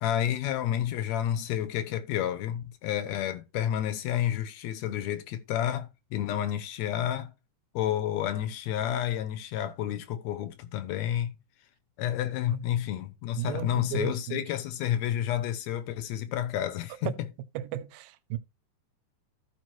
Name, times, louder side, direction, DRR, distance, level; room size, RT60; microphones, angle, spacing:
voice 1, 0.0-7.3 7.7-11.4 12.0-17.3, left 11 dB, 70° left, 1.9 m, -30 dB
voice 2, 13.4-14.4 17.0-17.1 17.6-18.4, right 12 dB, 85° right, 2.3 m, -34 dB
14.5 x 4.9 x 3.0 m
omnidirectional pair, 3.7 m